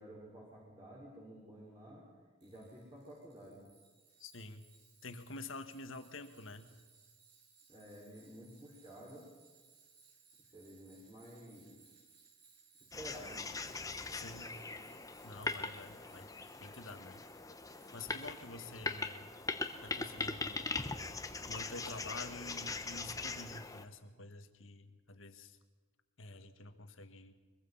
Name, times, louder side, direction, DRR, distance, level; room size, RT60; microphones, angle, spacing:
voice 1, 0.0-2.1 2.4-3.6 7.7-9.2 10.5-11.8 13.0-13.5 14.3-14.8, equal, 20° right, -5 dB, 5.2 m, -52 dB
Tools, 2.4-18.9, right 5 dB, 55° right, 4.6 m, -66 dB
voice 2, 4.2-4.6 5.0-6.8 14.1-14.5 15.2-16.3 16.6-17.3 17.9-19.3 19.8-20.8 21.5-25.6 26.2-27.3, left 2 dB, 75° left, 8 dB, 1.8 m, -48 dB
sound 1, 12.9-23.9, left 3 dB, 15° left, 1.0 m, -41 dB
23.5 x 23.0 x 5.7 m, 1.4 s
head